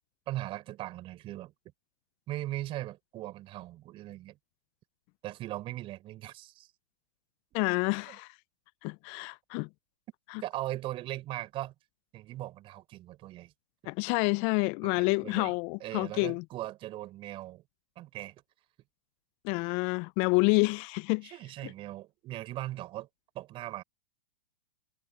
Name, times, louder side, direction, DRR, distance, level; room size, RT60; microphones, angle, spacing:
voice 1, 0.3-1.5 2.3-4.4 5.2-6.7 8.1-8.2 10.4-11.7 12.1-13.5 14.8-17.6 17.9-18.3 21.2-23.1 23.3-23.8, right 15 dB, 35° right, 5.1 m, -39 dB
voice 2, 7.5-8.3 8.8-9.7 10.3-10.4 13.8-16.4 19.4-21.3, left 30 dB, 40° left, 0.7 m, -28 dB
hypercardioid pair, 110°, 16 cm